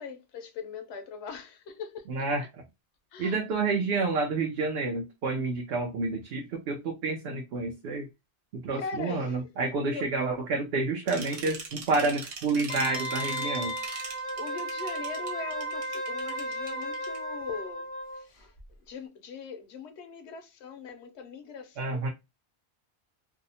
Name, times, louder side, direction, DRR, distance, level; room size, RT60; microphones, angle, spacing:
voice 1, 0.0-2.5 3.1-3.4 8.7-9.5 9.9-10.1 11.3-11.5 14.4-18.5 18.8-22.1, left 5 dB, 90° left, 0.9 m, -41 dB
voice 2, 2.1-2.6 3.2-8.1 8.5-13.7 21.8-22.1, right 3 dB, 70° right, 0.8 m, -29 dB
sound 1, 11.1-17.2, right 4 dB, 85° right, 1.1 m, -41 dB
Wind instrument woodwind instrument, 12.7-18.2 18.6-18.7, equal, 30° left, 0.8 m, -34 dB
2.7 x 2.1 x 2.7 m
omnidirectional pair, 1.1 m